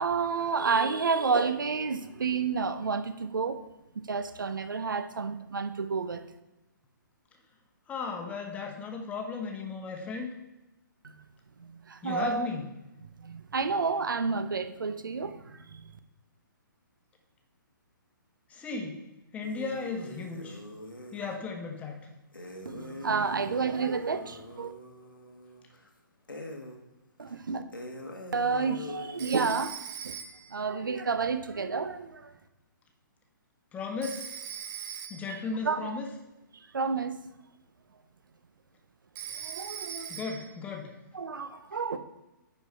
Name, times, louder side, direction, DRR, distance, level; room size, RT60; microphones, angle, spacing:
voice 1, 0.0-3.6 4.1-6.2 11.0-11.1 11.6-12.5 13.2-15.9 22.6-24.7 27.2-27.6 28.3-29.8 30.0-30.2 30.5-32.3 35.6-36.0 36.5-37.2 39.4-40.1 41.1-42.0, right 5 dB, 70° right, 11 dB, 0.7 m, -30 dB
voice 2, 7.9-10.3 12.0-12.7 18.5-19.0 19.3-20.6 21.1-22.0 33.7-34.3 35.1-36.1 40.1-40.9, left 4 dB, 10° left, 2 dB, 1.0 m, -35 dB
sound 1, 19.4-21.4 22.3-25.9 26.3-26.8 27.2-27.3 27.7-29.4, left 1 dB, 80° left, 1.4 m, -43 dB
Telephone, 29.2-30.6 34.0-35.4 39.2-40.6, right 9 dB, 20° right, 0.5 m, -40 dB
9.6 x 4.5 x 4.7 m, 0.99 s
figure-of-eight pair, 125°, 11 cm